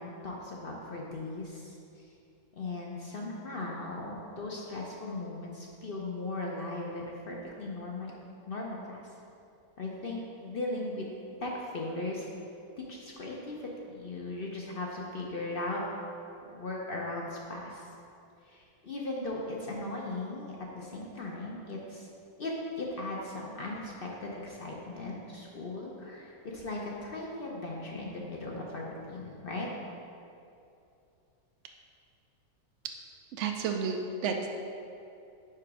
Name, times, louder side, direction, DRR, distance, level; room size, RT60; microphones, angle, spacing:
voice 1, 0.0-2.1 2.5-8.1 8.5-9.0 9.8-11.1 11.4-12.3 12.8-15.8 16.5-17.9 18.4-22.1 22.4-22.5 22.8-29.7, left 2 dB, 50° left, -2 dB, 0.7 m, -38 dB
voice 2, 33.3-34.5, right 5 dB, 65° right, 3 dB, 0.7 m, -31 dB
5.8 x 5.0 x 4.7 m, 2.6 s
omnidirectional pair, 1.6 m